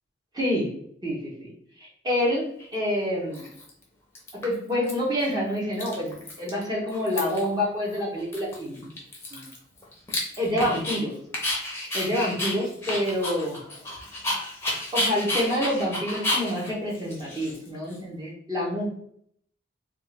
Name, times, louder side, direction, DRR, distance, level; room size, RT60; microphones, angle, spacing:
voice 1, 0.3-0.7 1.0-1.5 1.8-2.4 2.7-3.5 4.4-8.8 9.3-9.5 10.4-11.2 11.9-13.6 14.9-18.9, left 1 dB, 20° right, -4 dB, 0.8 m, -27 dB
Dog, 2.6-2.7 3.3-3.8 4.1-4.9 5.2-5.3 5.6-6.6 6.9-7.5 7.9-8.0 8.3-11.0 11.3-18.0, left 1 dB, 15° left, 0.7 m, -31 dB
3.5 x 2.4 x 3.2 m, 0.66 s
head